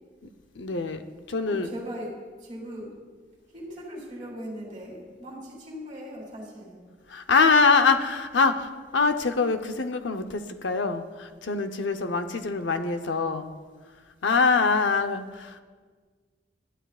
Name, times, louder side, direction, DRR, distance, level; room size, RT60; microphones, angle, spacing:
voice 1, 0.6-1.0 1.3-1.7 7.1-13.5 14.2-15.6, left 4 dB, 80° left, 8 dB, 0.8 m, -24 dB
voice 2, 1.5-2.1 2.4-2.9 3.5-6.8, equal, 30° right, -4 dB, 2.9 m, -39 dB
19.0 x 11.5 x 2.4 m, 1.5 s
head